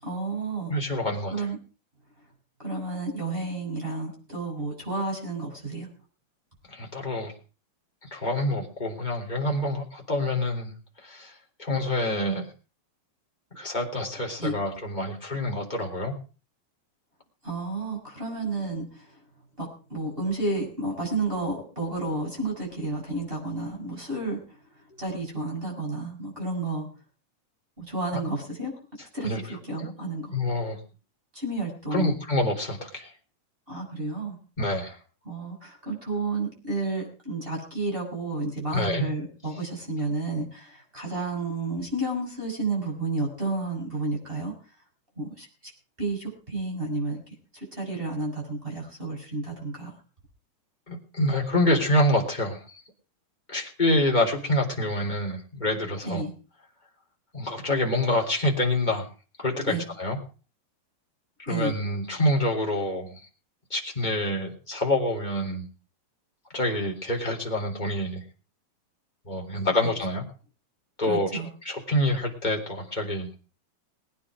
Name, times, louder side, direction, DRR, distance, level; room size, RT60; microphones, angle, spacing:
voice 1, 0.0-0.7 1.3-1.6 2.6-5.9 14.4-14.5 17.4-19.1 19.6-24.4 25.0-26.9 27.8-28.7 29.0-30.3 31.3-32.2 33.7-34.4 35.2-44.5 45.2-45.7 46.0-47.2 47.7-49.9 56.0-56.3 59.7-59.8 61.5-61.7 69.8-69.9 71.0-71.5, right 2 dB, 10° right, 0 dB, 6.6 m, -31 dB
voice 2, 0.7-1.5 6.7-7.3 8.1-10.7 11.0-11.3 11.6-12.5 13.5-16.1 29.2-29.4 29.8-29.9 30.3-30.8 31.9-33.1 34.6-34.9 38.7-39.0 50.9-52.6 53.5-56.2 57.3-59.1 59.4-60.2 61.4-63.2 63.7-65.7 66.5-68.2 69.2-70.2 71.0-73.3, left 1 dB, 10° left, -1 dB, 2.8 m, -26 dB
22.0 x 9.7 x 4.9 m, 0.37 s
omnidirectional pair, 4.7 m